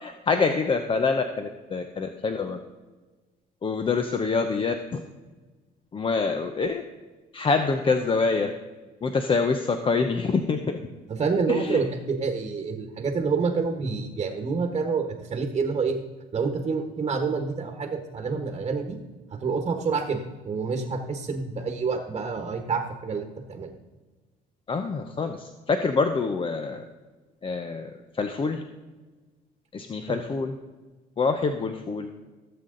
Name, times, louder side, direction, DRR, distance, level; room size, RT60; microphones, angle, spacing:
voice 1, 0.0-2.6 3.6-5.0 5.9-6.8 7.3-8.5 9.0-10.8 11.5-11.8 24.7-26.8 27.4-27.9 28.2-28.6 29.7-30.5 31.2-32.1, left 4 dB, 30° left, 7 dB, 0.8 m, -26 dB
voice 2, 11.1-16.0 16.3-19.0 19.3-23.7 30.1-30.2, right 5 dB, 30° right, 4 dB, 1.3 m, -28 dB
16.5 x 7.6 x 3.9 m, 1.3 s
cardioid pair, 110°, 17 cm